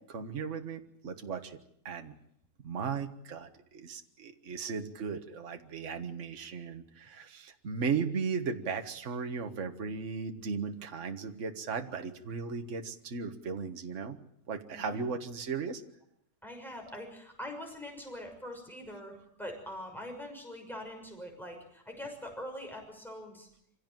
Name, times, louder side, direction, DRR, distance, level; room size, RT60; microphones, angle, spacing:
voice 1, 0.0-1.6 1.9-2.2 2.6-14.2 14.5-15.8, right 5 dB, 45° right, 6 dB, 1.7 m, -36 dB
voice 2, 14.7-15.0 16.4-23.5, left 1 dB, ahead, 2 dB, 6.3 m, -43 dB
26.0 x 16.5 x 9.2 m, 0.73 s
omnidirectional pair, 1.8 m